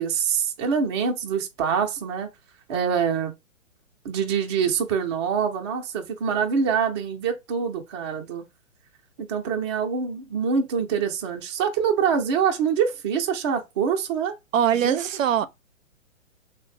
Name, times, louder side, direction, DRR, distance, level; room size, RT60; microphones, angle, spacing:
voice 1, 0.0-2.3 2.7-3.3 4.0-8.4 9.2-14.3 14.7-15.0, right 6 dB, 20° right, 0.5 m, -25 dB
voice 2, 14.5-15.5, right 9 dB, 75° right, 0.5 m, -22 dB
3.7 x 2.1 x 3.2 m
figure-of-eight pair, 125°, 40 cm